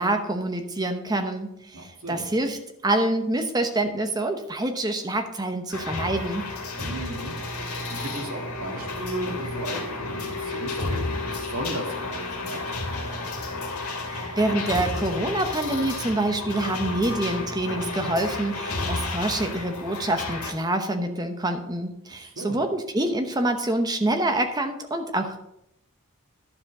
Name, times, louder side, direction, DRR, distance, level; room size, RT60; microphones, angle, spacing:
voice 1, 0.0-2.6 2.8-6.4 14.0-25.4, right 1 dB, 20° right, 5 dB, 0.9 m, -26 dB
voice 2, 1.7-2.3 6.8-7.4 7.9-12.7 22.1-22.6, right 1 dB, 80° right, 1 dB, 2.0 m, -35 dB
sound 1, 5.7-20.5, left 2 dB, 80° left, 2.2 m, -31 dB
11.5 x 5.1 x 5.4 m, 0.81 s
head